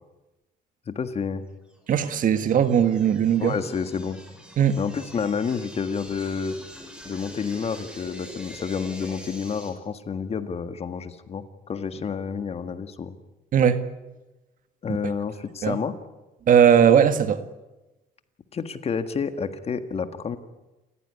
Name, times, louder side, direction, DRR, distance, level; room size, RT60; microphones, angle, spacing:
voice 1, 0.9-1.4 3.4-4.2 4.8-6.5 7.0-13.1 14.8-15.9 18.5-20.4, left 6 dB, 35° left, 1.7 m, -29 dB
sound 1, 1.7-9.7, equal, 5° right, 5.5 m, -44 dB
voice 2, 1.9-3.6 4.6-4.8 13.5-13.8 15.6-15.8 16.5-17.4, right 8 dB, 50° right, 1.7 m, -18 dB
28.5 x 15.0 x 9.7 m
cardioid pair, 110°, 17 cm